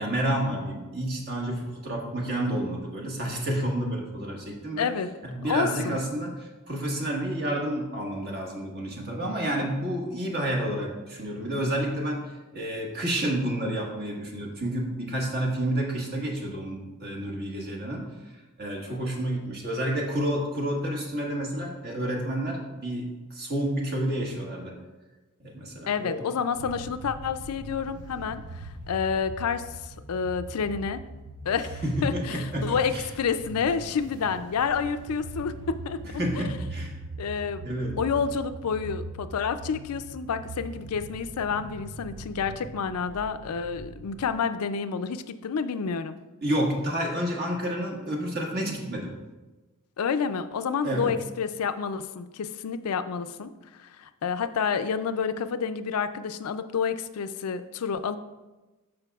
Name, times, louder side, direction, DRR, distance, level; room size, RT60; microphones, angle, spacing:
voice 1, 0.0-4.9 5.2-12.2 12.5-18.1 18.6-24.7 25.4-26.3 31.8-33.0 36.2-37.0 37.6-38.0 46.4-49.1 50.8-51.1, right 1 dB, 45° right, 0 dB, 1.5 m, -30 dB
voice 2, 4.8-5.1 5.4-6.0 25.9-31.0 31.4-36.0 36.3-36.6 37.2-37.6 38.0-46.1 50.0-58.2, left 6 dB, 75° left, 10 dB, 0.4 m, -29 dB
sound 1, 26.5-44.3, right 2 dB, 90° right, 0.7 m, -41 dB
12.5 x 5.1 x 2.3 m, 1.1 s
head